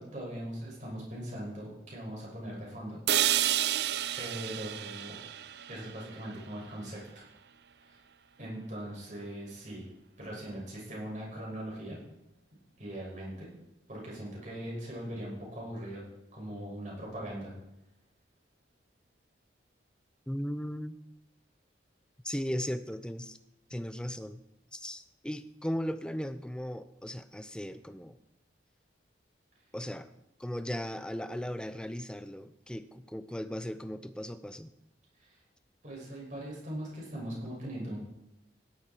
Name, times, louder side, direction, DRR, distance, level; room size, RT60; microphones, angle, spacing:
voice 1, 0.0-3.0 3.5-3.9 4.2-5.2 5.7-7.2 7.8-8.0 8.4-9.8 10.2-12.0 12.8-13.5 13.9-16.0 16.3-17.5 35.8-38.0, right 1 dB, 45° right, -3 dB, 6.5 m, -40 dB
sound 1, 3.1-7.1, right 11 dB, 70° right, 0.5 m, -31 dB
voice 2, 20.3-21.0 22.2-23.4 23.7-24.4 24.7-28.2 29.7-30.1 30.4-34.7, equal, 5° left, 11 dB, 0.6 m, -37 dB
16.0 x 12.0 x 4.6 m, 0.89 s
head